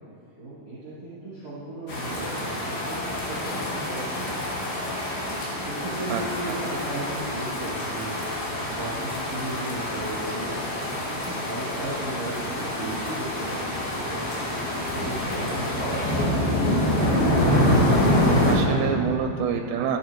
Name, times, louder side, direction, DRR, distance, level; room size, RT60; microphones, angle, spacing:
voice 1, 0.4-4.4 5.2-8.5 8.7-14.3 15.0-17.1, right 1 dB, 25° right, -14 dB, 3.2 m, -36 dB
sound 1, 1.9-18.6, left 1 dB, 65° left, 3.8 m, -26 dB
voice 2, 6.1-6.5 18.5-20.0, right 8 dB, 90° right, 3 dB, 2.7 m, -27 dB
16.0 x 9.8 x 3.1 m, 2.6 s
omnidirectional pair, 4.9 m